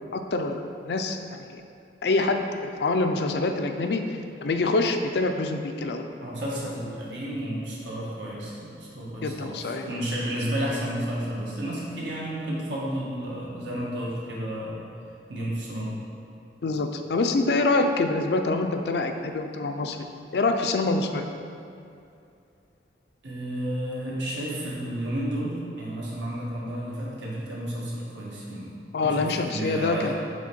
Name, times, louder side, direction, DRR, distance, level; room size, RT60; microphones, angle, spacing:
voice 1, 0.1-1.6 2.0-6.0 9.2-9.9 16.6-20.0 20.3-21.3 28.9-30.1, left 3 dB, 65° left, 6 dB, 0.4 m, -26 dB
voice 2, 6.2-14.8 15.3-15.9 23.2-28.7 29.0-30.1, right 1 dB, 85° right, -5 dB, 1.5 m, -32 dB
5.2 x 4.2 x 5.3 m, 2.5 s
head